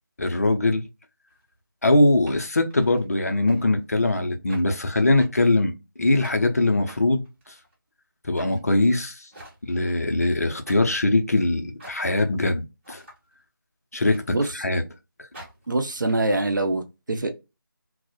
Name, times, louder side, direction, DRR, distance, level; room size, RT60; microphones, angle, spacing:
voice 1, 0.2-0.8 1.8-7.5 8.3-9.3 9.6-13.0 13.9-14.8, left 2 dB, 45° left, 0.4 m, -22 dB
sound 1, 1.3-1.4 2.2-3.0 3.5-3.6 3.9-4.2 4.5-4.7 5.2-5.3 6.2-6.4 6.9-7.7 8.3-8.6 9.3-9.8 10.6-11.0 11.8-12.2 12.8-13.2 14.1-14.7 15.3-16.1, right 1 dB, 35° right, 1.4 m, -46 dB
voice 2, 15.7-17.3, right 2 dB, 60° right, 0.5 m, -24 dB
2.4 x 2.0 x 2.6 m
figure-of-eight pair, 165°, 12 cm